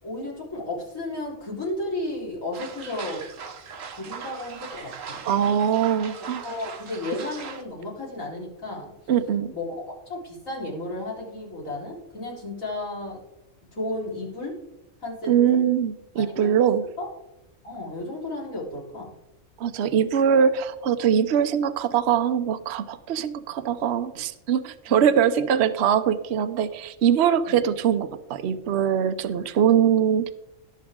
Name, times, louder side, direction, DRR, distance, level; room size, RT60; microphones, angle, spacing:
voice 1, 0.0-3.2 3.9-5.2 6.4-8.9 9.5-13.2 13.7-14.6 15.0-15.6 16.2-16.5 17.0-17.1 17.6-19.1 24.9-25.0 27.5-27.6, left 2 dB, 80° left, -5 dB, 4.6 m, -33 dB
sound 1, 2.5-7.6, right 6 dB, 75° right, 1.4 m, -39 dB
voice 2, 5.2-6.4 9.1-9.5 15.3-16.8 19.6-30.3, right 8 dB, 60° right, 10 dB, 0.9 m, -22 dB
17.5 x 7.5 x 3.7 m, 0.88 s
omnidirectional pair, 1.4 m